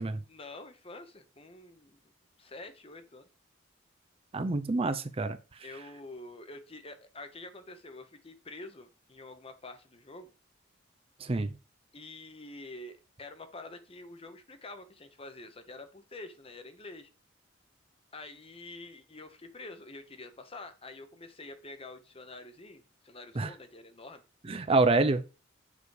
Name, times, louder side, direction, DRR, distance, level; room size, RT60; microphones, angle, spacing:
voice 1, 0.3-2.0 2.4-3.3 5.6-10.3 11.9-12.9 13.2-17.1 18.1-24.2, left 2 dB, 30° left, 1.0 m, -47 dB
voice 2, 4.3-5.4 11.2-11.6 23.4-23.5 24.4-25.2, right 3 dB, 30° right, 0.5 m, -27 dB
6.9 x 5.0 x 4.8 m
head